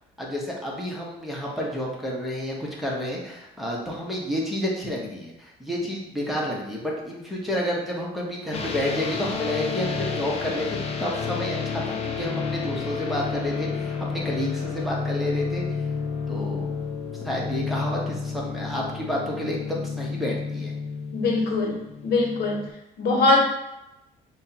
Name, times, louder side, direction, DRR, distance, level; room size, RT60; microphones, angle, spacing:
voice 1, 0.2-15.9 16.3-16.7 17.2-20.7, equal, ahead, -4 dB, 1.0 m, -30 dB
sound 1, 8.5-22.7, left 5 dB, 35° left, 0.5 m, -31 dB
voice 2, 21.1-22.7 23.0-23.4, left 2 dB, 70° left, 0 dB, 0.9 m, -22 dB
5.5 x 2.3 x 2.8 m, 0.89 s
cardioid pair, 110°, 17 cm